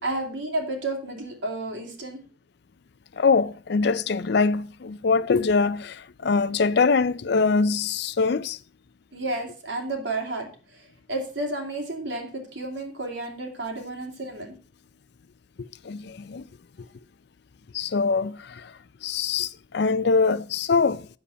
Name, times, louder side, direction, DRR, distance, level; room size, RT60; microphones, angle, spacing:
voice 1, 0.0-2.2 9.1-10.8 11.1-14.5, right 2 dB, 70° right, 2.9 m, -31 dB
voice 2, 3.2-8.6 15.6-16.5 16.8-16.9 17.7-18.7 19.0-21.1, left 4 dB, 55° left, 0.4 m, -23 dB
8.5 x 7.4 x 5.6 m
head